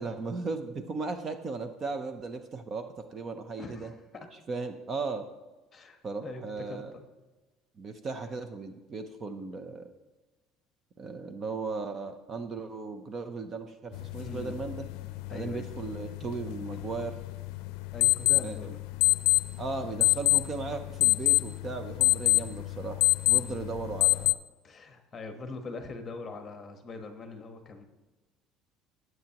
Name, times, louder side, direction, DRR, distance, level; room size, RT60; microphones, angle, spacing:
voice 1, 0.0-3.9 4.5-5.2 6.0-6.9 7.8-9.9 11.0-14.9 15.3-17.1 18.4-18.7 19.6-24.4, right 4 dB, 25° right, 8 dB, 0.6 m, -36 dB
voice 2, 3.6-4.3 5.7-7.0 14.2-14.6 15.3-15.7 17.9-18.8 23.3-23.6 24.6-27.8, left 3 dB, 20° left, 5 dB, 1.2 m, -42 dB
sound 1, 13.9-24.3, left 25 dB, 90° left, 0.5 m, -27 dB
20.0 x 7.8 x 2.9 m, 1.2 s
cardioid pair, 170°, 0 cm